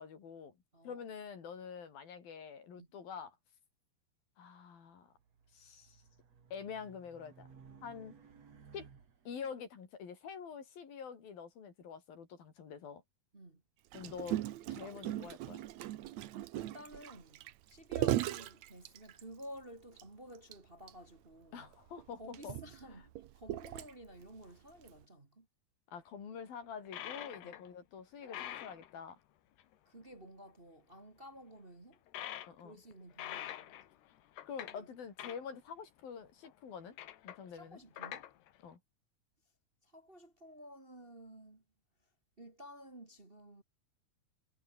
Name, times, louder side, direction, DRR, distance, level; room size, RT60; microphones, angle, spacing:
voice 1, 0.0-0.6 0.8-3.4 4.4-5.1 5.5-6.0 6.5-7.5 7.8-8.1 8.7-8.9 9.3-13.0 13.9-14.4 14.7-15.6 21.5-22.6 25.9-29.2 32.5-32.8 34.5-37.0 37.2-37.8 38.6-38.8, left 6 dB, 65° left, 5.4 m, -46 dB
voice 2, 0.7-1.1 2.8-2.9 13.3-13.6 16.5-21.7 22.2-25.5 27.4-27.6 29.8-32.0 32.6-33.7 34.7-34.9 37.5-38.3 39.8-41.6 42.0-42.1 42.4-43.6, equal, 20° right, 1.5 m, -53 dB
Race car auto racing, 5.1-9.5, right 6 dB, 40° right, 3.7 m, -59 dB
Gurgling, 13.9-19.4 20.0-20.1 20.3-20.5 20.9-21.0 21.7-24.2 24.9-25.0, right 13 dB, 80° right, 1.6 m, -38 dB
sound 1, 26.9-27.7 28.0-28.9 29.6-29.7 30.0-30.1 32.1-32.6 32.9-34.8 35.2-35.4 36.3-36.5 37.0-37.5 38.0-38.5, left 12 dB, 80° left, 3.7 m, -45 dB
omnidirectional pair, 4.6 m